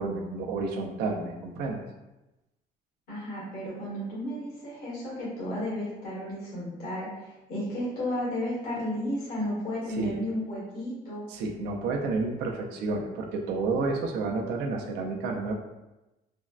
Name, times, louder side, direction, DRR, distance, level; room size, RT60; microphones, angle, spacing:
voice 1, 0.0-1.8 10.0-10.2 11.3-15.5, right 3 dB, 80° right, 2 dB, 0.5 m, -30 dB
voice 2, 3.1-11.2, left 1 dB, 65° left, -7 dB, 1.4 m, -33 dB
3.4 x 2.1 x 2.4 m, 1.0 s
cardioid pair, 110°, 17 cm